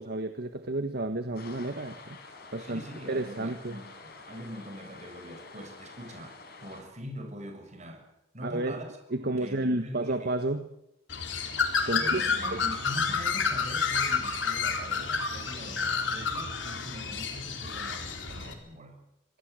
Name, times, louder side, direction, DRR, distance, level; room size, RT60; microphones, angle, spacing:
voice 1, 0.0-2.2 2.5-2.8 3.1-3.8 8.4-8.8 9.1-10.7 11.9-12.2 12.5-12.6, right 2 dB, 60° right, 8 dB, 1.4 m, -31 dB
sound 1, 1.3-6.8, left 3 dB, 55° left, 5.8 m, -48 dB
voice 2, 2.6-8.1 8.3-10.3 11.8-19.0, equal, 40° right, 5 dB, 6.7 m, -43 dB
Bird, 11.1-18.5, left 5 dB, 75° left, 4.0 m, -30 dB
25.0 x 18.0 x 8.2 m, 0.83 s
head